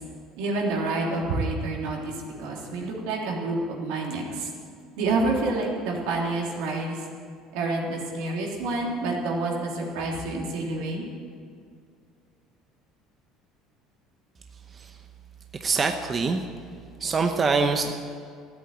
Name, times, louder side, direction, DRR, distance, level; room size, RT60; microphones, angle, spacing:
voice 1, 0.4-2.1 2.4-4.5 5.0-7.0 7.5-11.1, right 2 dB, 85° right, -1 dB, 3.1 m, -28 dB
voice 2, 15.6-16.4 17.0-17.9, right 4 dB, 30° right, 6 dB, 0.8 m, -24 dB
14.0 x 8.5 x 9.0 m, 2.2 s
cardioid pair, 120°, 0 cm